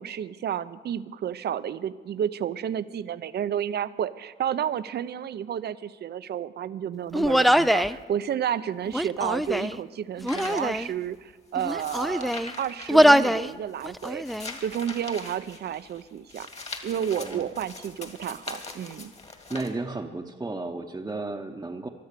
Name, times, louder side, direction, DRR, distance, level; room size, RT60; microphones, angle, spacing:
voice 1, 0.0-12.3 12.6-14.3 14.6-16.5 16.8-19.1, right 9 dB, 55° right, 15 dB, 0.6 m, -31 dB
Human voice, 7.1-8.0 8.9-9.8 10.2-10.9 11.6-12.5 12.9-13.5 13.8-14.5, equal, ahead, 0.4 m, -22 dB
sound 1, 10.3-19.7, left 3 dB, 30° left, 2.1 m, -42 dB
voice 2, 19.5-21.9, right 2 dB, 15° right, 0 dB, 0.9 m, -33 dB
23.0 x 7.8 x 6.7 m, 1.4 s
cardioid pair, 90°, 20 cm